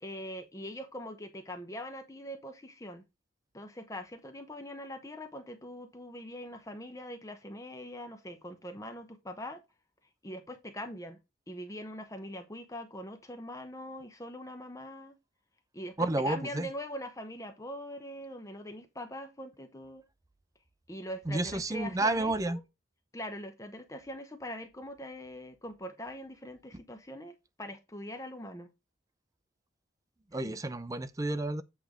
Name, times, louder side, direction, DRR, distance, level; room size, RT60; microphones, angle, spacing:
voice 1, 0.0-3.0 3.5-9.6 10.2-11.2 11.5-15.2 15.7-20.0 20.9-22.6 23.1-28.7 30.4-30.6, equal, 15° left, 0.8 m, -42 dB
voice 2, 16.0-16.7 21.3-22.6 30.3-31.6, right 2 dB, 15° right, 0.5 m, -30 dB
8.3 x 3.4 x 6.2 m
head